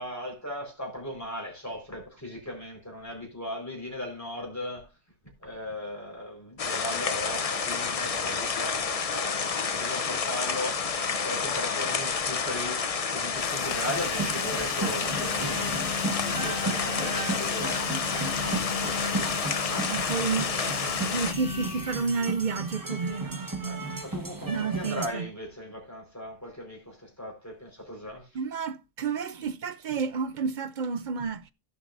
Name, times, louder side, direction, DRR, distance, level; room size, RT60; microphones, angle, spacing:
voice 1, 0.0-4.9 5.4-10.9 11.2-19.8 23.6-28.3, equal, 10° left, 4.4 m, -38 dB
sound 1, 6.6-21.3, left 5 dB, 40° left, 0.5 m, -29 dB
sound 2, 13.3-22.7, left 6 dB, 55° left, 1.3 m, -37 dB
sound 3, 13.8-25.1, right 3 dB, 15° right, 1.1 m, -35 dB
voice 2, 19.9-20.5 21.1-24.0 24.5-25.3 28.3-31.5, right 5 dB, 55° right, 0.5 m, -30 dB
16.5 x 7.2 x 2.6 m
omnidirectional pair, 1.4 m